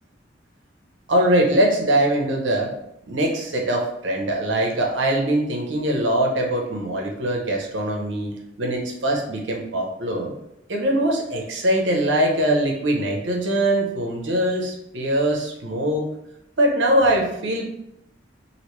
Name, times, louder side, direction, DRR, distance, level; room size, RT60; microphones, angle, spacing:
voice 1, 1.1-2.7 3.1-10.3 10.7-16.1 16.6-17.7, right 1 dB, 85° right, 0 dB, 0.7 m, -22 dB
3.0 x 2.7 x 3.1 m, 0.81 s
head